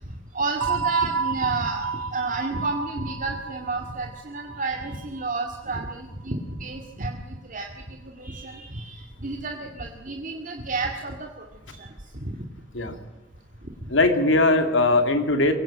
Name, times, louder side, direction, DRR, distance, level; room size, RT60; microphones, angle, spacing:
voice 1, 0.3-11.9 12.2-12.4 13.8-13.9, right 3 dB, 45° right, 2 dB, 2.1 m, -31 dB
sound 1, 0.6-5.2, right 5 dB, 80° right, 1.2 m, -30 dB
voice 2, 13.9-15.5, left 2 dB, 70° left, 7 dB, 2.7 m, -20 dB
23.0 x 17.0 x 8.7 m, 1.1 s
head